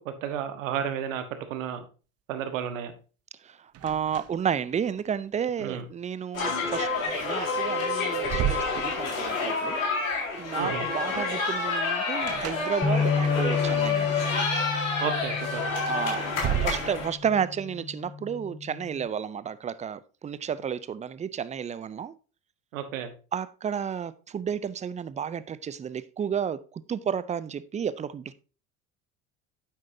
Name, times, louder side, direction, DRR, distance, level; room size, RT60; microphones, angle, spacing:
voice 1, 0.0-1.8 2.3-2.9 5.6-5.8 10.6-10.8 15.0-15.7 22.7-23.1, right 9 dB, 75° right, 1.5 m, -32 dB
light wooden door multiple open close, 3.7-4.6 4.8-5.0 7.2-7.3 7.7-9.4 12.2-13.2 15.7-17.4, right 11 dB, 40° right, 0.8 m, -33 dB
voice 2, 3.8-9.8 10.4-14.1 15.9-22.1 23.3-28.3, right 8 dB, 20° right, 0.5 m, -32 dB
sound 1, 6.3-17.1, left 4 dB, 80° left, 3.9 m, -28 dB
sound 2, 12.8-19.1, left 5 dB, 10° left, 1.1 m, -32 dB
9.8 x 7.4 x 2.7 m
hypercardioid pair, 75°, 40 cm